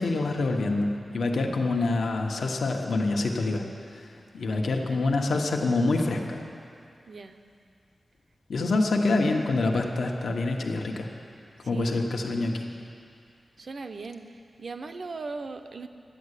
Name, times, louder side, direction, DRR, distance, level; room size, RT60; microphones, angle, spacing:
voice 1, 0.0-3.6 3.9-4.1 4.3-6.4 8.5-11.1 11.6-12.7, left 2 dB, 75° left, 2 dB, 1.2 m, -26 dB
voice 2, 4.5-5.1 7.1-7.4 11.7-12.1 13.6-14.2 14.6-15.9, right 4 dB, 50° right, 8 dB, 0.7 m, -39 dB
12.5 x 9.9 x 8.3 m, 2.4 s
wide cardioid pair, 165°, 0 cm